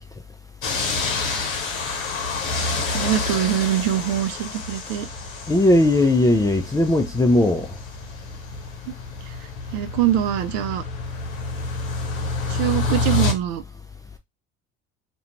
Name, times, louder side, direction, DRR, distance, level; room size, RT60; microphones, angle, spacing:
sound 1, 0.6-13.3, left 3 dB, 85° left, 0.7 m, -28 dB
voice 1, 2.9-5.1 8.9-9.0 9.3-9.4 9.7-10.8 12.5-13.6, right 12 dB, 70° right, 0.6 m, -23 dB
voice 2, 5.5-7.7, left 1 dB, 10° left, 0.4 m, -18 dB
2.4 x 2.3 x 2.9 m
hypercardioid pair, 65°, 40 cm